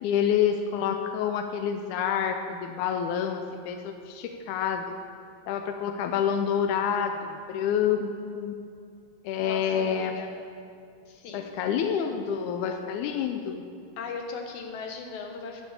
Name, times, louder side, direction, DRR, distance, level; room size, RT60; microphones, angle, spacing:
voice 1, 0.0-4.8 5.5-8.1 8.4-8.6 9.2-10.2 11.3-13.6, left 8 dB, 85° left, 5 dB, 1.8 m, -28 dB
voice 2, 9.4-10.3 11.1-11.5 14.0-15.7, left 4 dB, 65° left, 3 dB, 2.3 m, -38 dB
10.5 x 8.5 x 7.3 m, 2.4 s
omnidirectional pair, 4.1 m